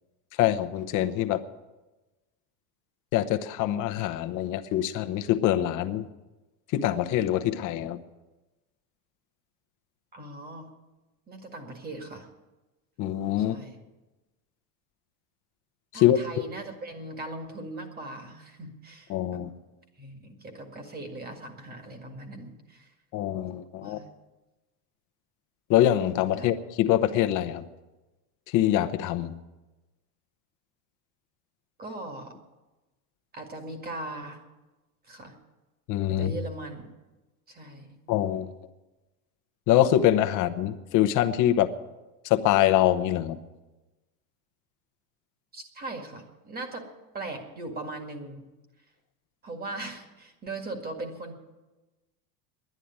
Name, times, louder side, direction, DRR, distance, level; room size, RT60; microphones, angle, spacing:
voice 1, 0.4-1.4 3.1-6.1 6.7-8.0 13.0-13.6 15.9-16.2 19.1-19.5 23.1-24.0 25.7-27.6 28.5-29.4 35.9-36.3 38.1-38.5 39.7-41.7 42.2-43.4, left 12 dB, 40° left, 8 dB, 0.9 m, -24 dB
voice 2, 10.1-10.7 11.3-12.3 13.5-13.8 15.9-19.4 20.0-22.9 23.8-24.1 26.4-26.5 31.8-32.3 33.3-34.4 35.1-35.4 36.1-36.9 37.5-38.0 45.5-46.8 47.1-48.5 49.4-51.3, right 2 dB, 20° right, 5 dB, 1.9 m, -39 dB
11.0 x 10.5 x 9.4 m, 1.1 s
supercardioid pair, 145°, 46 cm